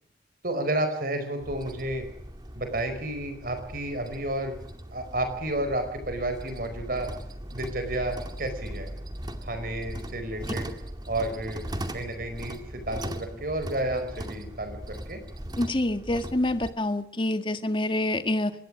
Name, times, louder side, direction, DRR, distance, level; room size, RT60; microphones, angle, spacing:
voice 1, 0.4-2.1 2.5-4.6 4.9-7.1 7.5-8.9 9.4-10.7 11.1-11.6 11.9-15.2, right 1 dB, 55° right, 8 dB, 4.9 m, -31 dB
sound 1, 1.4-16.7, right 1 dB, 25° right, 2.2 m, -39 dB
voice 2, 15.6-18.5, left 1 dB, 30° left, 9 dB, 1.8 m, -27 dB
25.5 x 20.5 x 6.3 m, 0.71 s
head